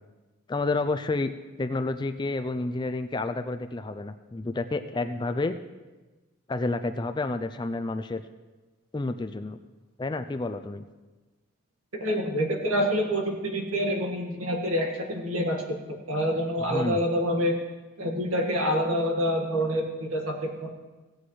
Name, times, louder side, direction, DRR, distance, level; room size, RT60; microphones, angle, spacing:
voice 1, 0.5-1.3 1.6-5.5 6.5-8.2 8.9-9.6 10.0-10.8 16.7-17.0, left 2 dB, 20° left, 10 dB, 0.3 m, -30 dB
voice 2, 12.0-15.6 15.9-17.5 18.0-20.7, equal, 80° right, 1 dB, 1.7 m, -27 dB
16.5 x 8.5 x 3.2 m, 1.2 s
head